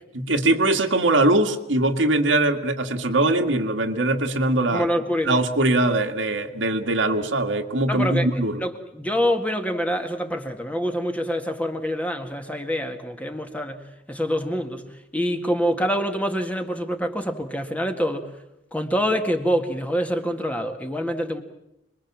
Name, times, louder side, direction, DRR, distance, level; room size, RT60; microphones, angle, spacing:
voice 1, 0.1-4.9 5.3-8.6, right 2 dB, 85° right, 4 dB, 2.0 m, -21 dB
voice 2, 4.7-5.4 7.9-8.3 8.6-13.8 14.1-14.8 15.1-18.3 18.7-21.4, equal, 10° left, 5 dB, 1.9 m, -25 dB
26.5 x 22.0 x 7.4 m, 0.85 s
head